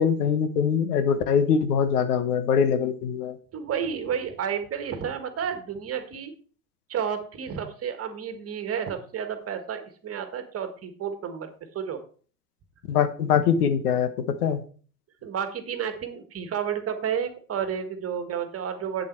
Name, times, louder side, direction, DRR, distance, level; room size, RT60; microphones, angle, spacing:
voice 1, 0.0-3.4 12.9-14.1 14.4-14.6, left 7 dB, 70° left, 11 dB, 1.3 m, -23 dB
voice 2, 3.5-6.3 6.9-11.5 11.7-12.0 15.2-19.1, right 8 dB, 30° right, 8 dB, 1.8 m, -31 dB
8.3 x 7.5 x 4.6 m, 0.41 s
hypercardioid pair, 95°, 47 cm